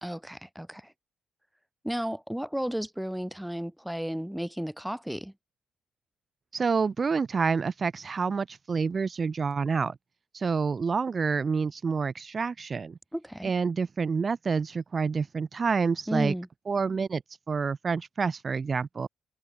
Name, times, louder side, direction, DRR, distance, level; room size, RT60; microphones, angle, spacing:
voice 1, 0.0-0.9 1.8-5.3 13.1-13.5 16.1-16.5, equal, 5° right, 2.3 m, -33 dB
voice 2, 6.5-10.0 10.3-13.0 13.4-16.3 16.7-17.2 17.5-19.1, right 5 dB, 35° right, 0.4 m, -28 dB
cardioid pair, 90°, 0 cm